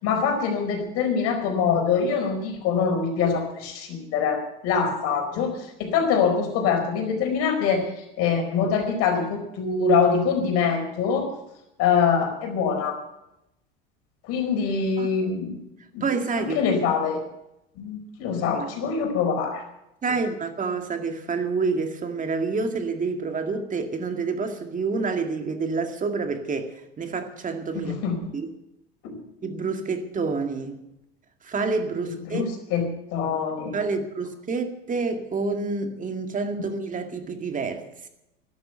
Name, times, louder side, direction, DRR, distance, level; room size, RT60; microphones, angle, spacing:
voice 1, 0.0-11.3 11.8-13.0 14.2-15.6 15.9-16.0 16.3-17.2 17.8-19.6 27.8-28.2 29.0-29.2 32.0-33.7, left 6 dB, 55° left, 4.7 m, -24 dB
voice 2, 16.0-16.6 18.5-18.7 20.0-27.9 28.3-28.5 29.4-30.8 31.4-32.4 33.7-38.1, right 4 dB, 25° right, 2.2 m, -28 dB
13.0 x 11.5 x 7.9 m
hypercardioid pair, 75°, 29 cm